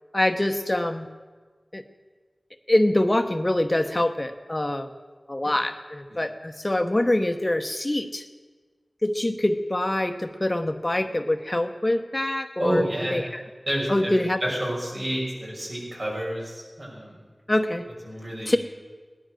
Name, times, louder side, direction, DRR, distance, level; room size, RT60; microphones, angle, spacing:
voice 1, 0.1-1.1 1.7-1.8 2.7-4.9 5.3-8.2 9.0-12.8 13.1-13.4 13.9-14.4 17.5-17.8 18.5-18.6, left 1 dB, 35° left, 7 dB, 0.9 m, -24 dB
voice 2, 12.6-13.2 13.7-14.1 14.4-17.2 18.0-18.6, right 1 dB, 60° right, -4 dB, 6.0 m, -29 dB
16.5 x 11.5 x 6.4 m, 1.4 s
wide cardioid pair, 40°, 0 cm